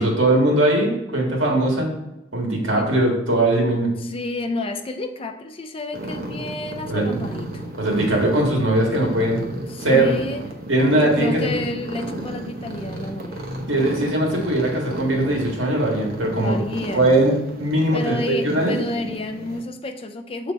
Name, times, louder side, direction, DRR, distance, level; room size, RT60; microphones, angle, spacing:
voice 1, 0.0-1.9 2.3-3.9 6.9-7.2 7.8-9.4 9.8-10.1 10.7-11.5 13.7-16.6 16.9-18.8, right 1 dB, 70° right, 0 dB, 1.7 m, -20 dB
voice 2, 4.0-7.6 9.7-10.5 11.0-13.5 16.4-17.1 17.9-20.5, left 2 dB, 25° left, 7 dB, 0.3 m, -30 dB
sound 1, 5.9-19.6, right 1 dB, 45° right, 0.7 m, -33 dB
7.0 x 3.3 x 4.0 m, 0.92 s
head